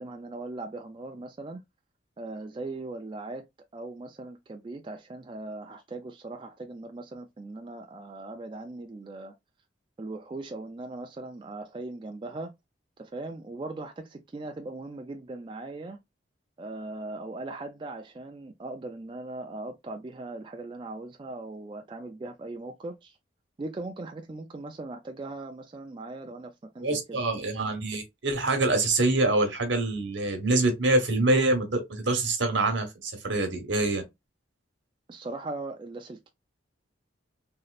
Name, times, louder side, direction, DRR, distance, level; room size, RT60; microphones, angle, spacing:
voice 1, 0.0-1.6 2.2-3.4 3.7-9.3 10.0-12.5 13.0-16.0 16.6-23.2 23.6-27.2 35.1-36.3, right 2 dB, 25° right, 0.3 m, -39 dB
voice 2, 26.8-34.0, right 2 dB, 75° right, 1.0 m, -25 dB
3.1 x 2.7 x 2.3 m
head